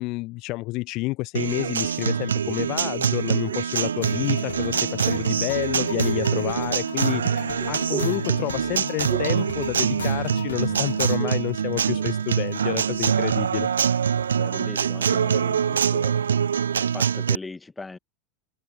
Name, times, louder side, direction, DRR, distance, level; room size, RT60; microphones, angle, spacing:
voice 1, 0.0-13.7, left 22 dB, 45° left, 0.7 m, -29 dB
Acoustic guitar, 1.3-17.4, right 7 dB, 70° right, 0.3 m, -24 dB
sound 1, 1.6-3.8 4.5-5.3 6.4-10.4 10.7-11.6 11.8-12.7 13.1-16.3, right 10 dB, 30° right, 1.7 m, -41 dB
sound 2, 4.0-11.2, left 9 dB, 65° left, 1.4 m, -35 dB
voice 2, 14.3-16.1 16.7-18.0, left 3 dB, 10° left, 1.9 m, -39 dB
figure-of-eight pair, 85°, 0 cm